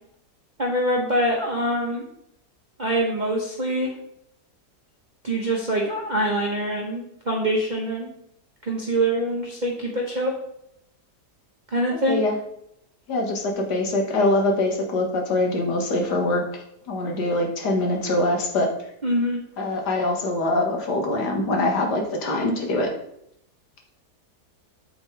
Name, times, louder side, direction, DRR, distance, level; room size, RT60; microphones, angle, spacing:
voice 1, 0.6-2.0 2.8-3.9 5.2-8.1 8.7-10.3 11.7-12.2 19.0-19.4, right 1 dB, 30° right, -2 dB, 1.3 m, -24 dB
voice 2, 13.1-18.7 19.6-22.9, left 2 dB, 75° left, 2 dB, 2.1 m, -23 dB
8.2 x 7.3 x 3.3 m, 0.75 s
omnidirectional pair, 1.8 m